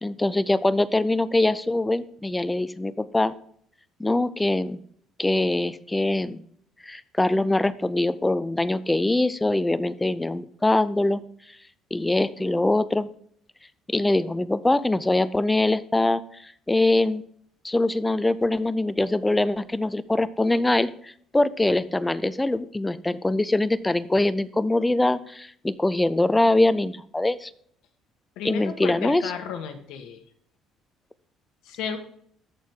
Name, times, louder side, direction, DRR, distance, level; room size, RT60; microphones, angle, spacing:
voice 1, 0.0-3.3 4.0-4.8 5.2-6.4 6.8-11.2 11.9-13.1 13.9-17.2 17.6-27.5 28.4-29.2, left 2 dB, 10° left, 15 dB, 0.4 m, -23 dB
voice 2, 28.4-30.2 31.6-32.0, left 7 dB, 75° left, 5 dB, 1.4 m, -33 dB
13.5 x 4.6 x 3.6 m, 0.63 s
cardioid pair, 135°, 0 cm